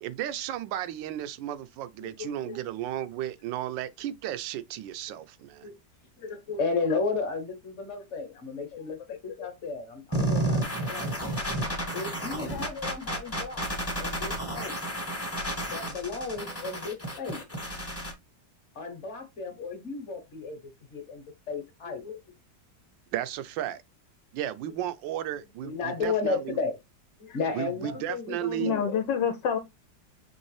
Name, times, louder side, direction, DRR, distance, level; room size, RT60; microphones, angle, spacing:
voice 1, 0.0-5.7 23.1-23.8 24.3-26.6 27.5-28.7, right 11 dB, 85° right, 1.3 m, -34 dB
voice 2, 2.0-2.6 5.6-5.7 6.2-9.0 9.2-11.2 11.9-13.6 14.0-14.7 15.6-17.4 18.7-22.2 25.6-26.7 27.2-29.0, left 4 dB, 45° left, 1.2 m, -33 dB
sound 1, 10.1-18.1, right 1 dB, 10° left, 0.7 m, -31 dB
voice 3, 28.6-29.6, left 7 dB, 80° left, 1.3 m, -27 dB
5.3 x 3.2 x 3.2 m
omnidirectional pair, 2.0 m